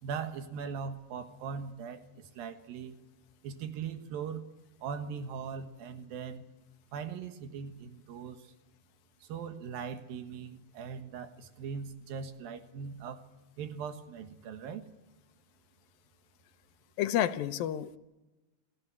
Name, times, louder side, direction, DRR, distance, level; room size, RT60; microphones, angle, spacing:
voice 1, 0.0-3.0 3.4-4.4 4.8-6.5 6.9-8.5 9.2-13.3 13.6-14.8, right 6 dB, 85° right, 8 dB, 3.3 m, -40 dB
voice 2, 17.0-18.0, left 11 dB, 85° left, 11 dB, 2.7 m, -30 dB
28.0 x 15.5 x 8.5 m, 1.1 s
omnidirectional pair, 4.0 m